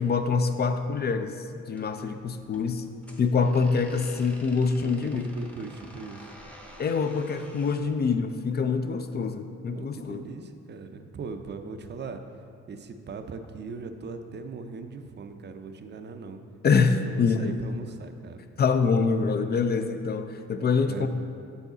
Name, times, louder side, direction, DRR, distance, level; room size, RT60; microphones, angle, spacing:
voice 1, 0.0-2.9 3.2-5.2 6.8-10.3 16.6-17.6 18.6-21.1, left 5 dB, 35° left, 8 dB, 0.4 m, -25 dB
sound 1, 1.7-7.9, equal, 5° left, 0.7 m, -50 dB
voice 2, 4.8-6.3 9.7-12.2 12.7-16.4 16.8-18.5 20.8-21.1, right 4 dB, 35° right, 7 dB, 0.5 m, -40 dB
6.9 x 4.9 x 3.9 m, 2.3 s
cardioid pair, 90°, 30 cm